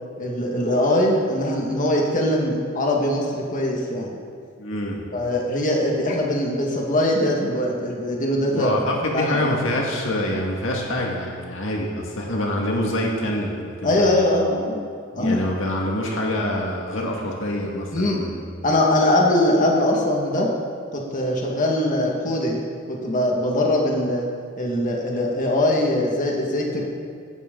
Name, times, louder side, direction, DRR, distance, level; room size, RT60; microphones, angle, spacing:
voice 1, 0.2-4.1 5.1-8.7 9.1-9.5 13.8-14.9 15.1-15.4 17.9-18.3 18.6-20.5 20.9-22.6 22.9-24.3 24.6-26.8, left 1 dB, 40° left, -1 dB, 1.9 m, -22 dB
voice 2, 4.6-5.0 8.5-14.1 15.1-18.3, left 1 dB, 70° left, -1 dB, 1.9 m, -26 dB
16.5 x 12.0 x 3.9 m, 2.3 s
head